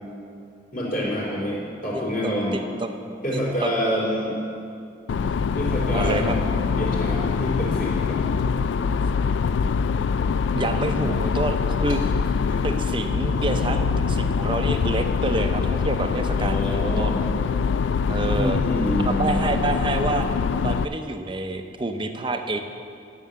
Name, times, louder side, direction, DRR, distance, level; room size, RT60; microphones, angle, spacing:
voice 1, 0.7-2.6 3.2-4.4 5.6-8.2 12.5-12.6 16.3-17.2 18.2-19.4, equal, 50° left, -5 dB, 3.3 m, -27 dB
voice 2, 2.2-2.9 3.3-3.7 5.9-6.4 10.5-12.0 12.6-17.1 18.1-18.6 19.0-20.3 20.6-22.6, right 2 dB, 25° right, 6 dB, 0.6 m, -28 dB
sound 1, 5.1-20.8, left 5 dB, 75° left, 0.3 m, -24 dB
11.0 x 6.8 x 7.4 m, 2.5 s
head